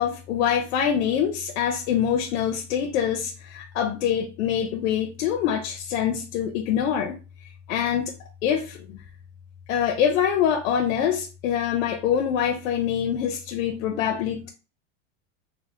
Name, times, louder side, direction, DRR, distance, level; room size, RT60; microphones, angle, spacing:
voice 1, 0.0-8.1 8.4-9.0 9.7-14.5, left 8 dB, 85° left, 4 dB, 0.5 m, -25 dB
3.3 x 2.0 x 2.9 m, 0.33 s
supercardioid pair, 175°, 39 cm